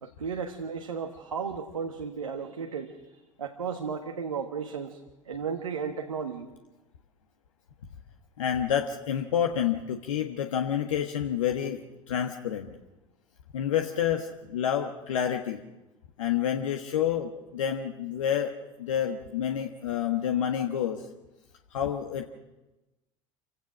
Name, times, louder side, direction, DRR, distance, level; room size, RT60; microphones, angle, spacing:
voice 1, 0.0-3.0 3.4-5.0 5.2-6.5, right 6 dB, 80° right, 4 dB, 1.5 m, -34 dB
voice 2, 8.4-11.8 12.1-12.7 13.5-15.6 16.2-18.5 18.8-21.0 21.7-22.3, left 9 dB, 70° left, 4 dB, 1.4 m, -28 dB
28.0 x 17.0 x 6.3 m, 1.0 s
figure-of-eight pair, 70°, 17 cm